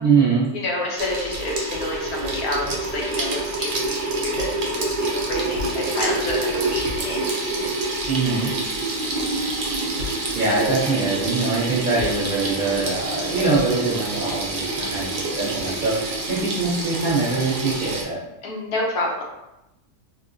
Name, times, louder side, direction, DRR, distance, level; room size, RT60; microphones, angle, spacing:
voice 1, 0.0-0.5 8.1-8.5 10.3-18.2, right 4 dB, 35° right, -9 dB, 0.9 m, -23 dB
voice 2, 0.5-7.3 18.4-19.2, left 2 dB, 75° left, -2 dB, 1.2 m, -29 dB
Water tap faucet / Sink (filling or washing), 1.0-18.0, right 2 dB, 85° right, 0.4 m, -27 dB
3.7 x 2.1 x 2.6 m, 0.89 s
omnidirectional pair, 1.6 m